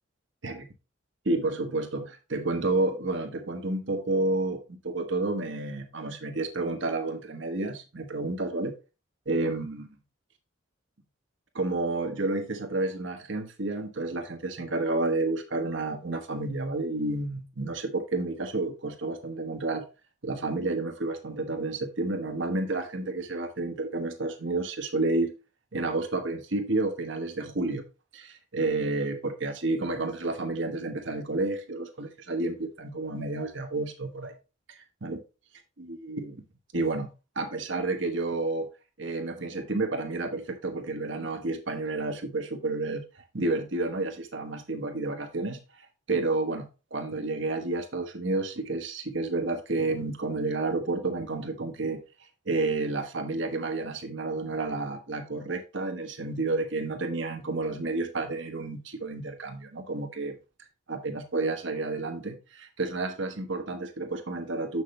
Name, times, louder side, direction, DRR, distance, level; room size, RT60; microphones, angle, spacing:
voice 1, 1.2-8.7 9.3-9.9 11.5-19.8 20.2-25.3 25.7-27.8 28.1-34.3 34.7-35.2 35.8-36.4 36.7-37.1 37.3-38.7 39.0-43.1 43.3-52.0 52.5-60.4 60.9-64.8, right 2 dB, 70° right, 1.2 m, -30 dB
6.9 x 6.0 x 3.1 m
head